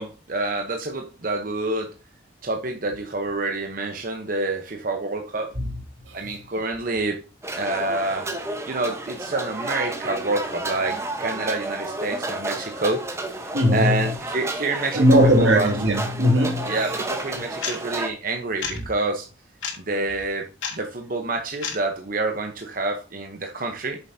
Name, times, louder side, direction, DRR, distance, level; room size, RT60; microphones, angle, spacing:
voice 1, 0.0-1.9 2.4-5.5 6.1-7.2 7.6-8.3 8.7-15.1 15.4-15.8 16.6-19.3 19.8-24.0, right 2 dB, 45° right, 0.9 m, -27 dB
sound 1, 7.4-18.1, right 2 dB, 15° right, 1.0 m, -31 dB
voice 2, 13.5-14.1 14.9-16.7, equal, 80° right, 2.6 m, -18 dB
sound 2, 17.6-17.8 18.6-18.8 19.6-19.8 20.6-20.8 21.6-21.8, left 6 dB, 90° left, 2.4 m, -28 dB
9.0 x 6.9 x 2.7 m
head